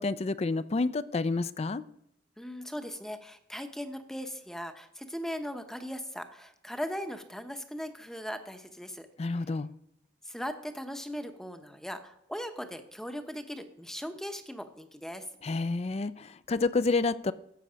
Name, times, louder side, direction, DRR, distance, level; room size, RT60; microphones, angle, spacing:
voice 1, 0.0-1.8 9.2-9.7 15.4-17.3, left 3 dB, 35° left, 16 dB, 0.4 m, -29 dB
voice 2, 2.4-9.1 10.2-15.3, equal, 5° left, 8 dB, 0.9 m, -39 dB
14.0 x 8.3 x 5.1 m, 0.79 s
head